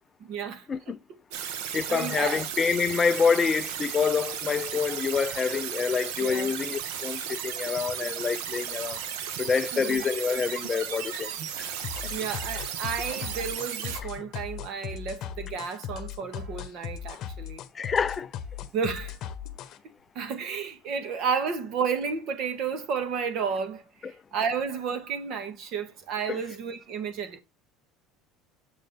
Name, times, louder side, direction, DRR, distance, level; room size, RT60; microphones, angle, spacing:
voice 1, 0.2-1.0 1.6-2.4 6.2-6.5 9.7-10.0 12.1-17.6 18.7-19.2 20.2-27.4, right 6 dB, 45° right, 1.8 m, -32 dB
sound 1, 1.3-14.0, right 8 dB, 75° right, 1.3 m, -35 dB
voice 2, 1.7-9.0 9.4-11.3 11.6-11.7 17.7-18.3 24.0-24.1 26.3-26.4, left 6 dB, 20° left, 0.5 m, -27 dB
sound 2, 11.8-19.8, left 9 dB, 40° left, 1.0 m, -38 dB
7.3 x 6.7 x 3.4 m
cardioid pair, 165°, 0 cm